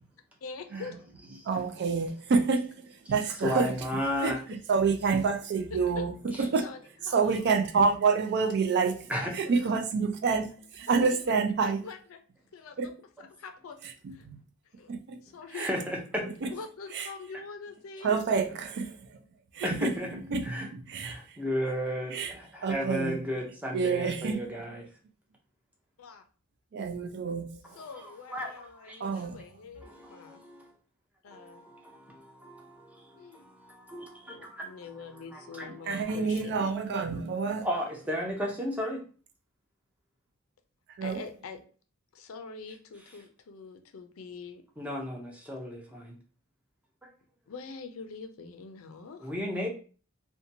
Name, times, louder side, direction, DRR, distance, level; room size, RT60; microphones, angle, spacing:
voice 1, 0.4-1.0 1.5-1.6 4.3-4.4 5.7-6.1 6.5-6.8 7.1-7.4 10.9-11.3 11.6-12.2 12.5-12.9 13.2-13.8 14.1-14.3 14.8-14.9 15.2-15.7 16.5-18.2 26.0-26.2 27.7-30.4 31.2-31.7 33.2-33.5 34.3-36.6 41.0-41.6 42.1-44.6 47.5-49.3, left 5 dB, 80° left, 0.4 m, -44 dB
voice 2, 1.5-2.7 3.1-3.7 4.2-6.7 7.1-9.0 9.3-11.9 12.8-12.9 14.0-14.4 14.9-15.2 15.6-15.7 16.4-16.5 16.9-17.1 18.0-19.0 19.5-21.4 22.1-22.3 22.6-23.2 23.7-24.8 26.7-27.6 29.0-29.4 35.9-37.7 41.0-41.2, right 5 dB, 55° right, 0.4 m, -28 dB
voice 3, 3.4-4.4 6.3-6.4 9.1-9.3 15.5-16.3 19.6-20.7 21.0-24.9 27.6-29.0 29.8-30.7 31.3-36.2 37.6-39.0 44.8-46.2 49.2-49.7, equal, 5° right, 0.6 m, -35 dB
2.8 x 2.2 x 2.6 m
head